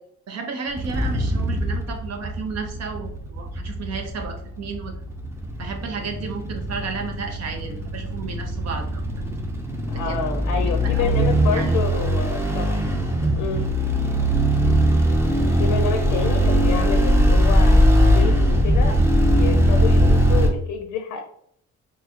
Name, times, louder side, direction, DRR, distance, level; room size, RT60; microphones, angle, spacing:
voice 1, 0.3-4.9 5.6-9.0 9.9-10.2 10.6-11.2 11.5-11.7 14.2-14.5, right 5 dB, 60° right, 5 dB, 0.8 m, -33 dB
sound 1, 0.7-20.5, equal, 10° right, 0.6 m, -20 dB
voice 2, 9.9-12.9 13.4-13.7 15.6-19.0 19.3-21.2, left 6 dB, 90° left, 4 dB, 0.6 m, -28 dB
3.8 x 2.7 x 2.8 m, 0.67 s
cardioid pair, 90°, 30 cm